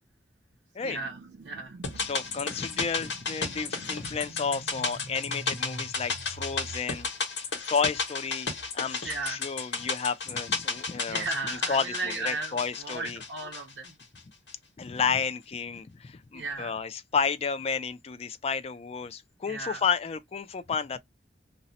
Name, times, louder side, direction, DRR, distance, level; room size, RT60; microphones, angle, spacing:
sound 1, 0.8-6.8, right 2 dB, 55° right, 0.5 m, -45 dB
voice 1, 0.8-1.8 9.0-9.4 11.1-13.9 16.3-16.7 19.5-19.8, right 3 dB, 80° right, 0.8 m, -35 dB
sound 2, 1.8-14.2 14.5-14.6, left 4 dB, 85° left, 1.2 m, -33 dB
voice 2, 2.0-7.1 7.4-13.2 14.8-21.0, left 6 dB, 35° left, 0.4 m, -32 dB
2.6 x 2.0 x 3.9 m
head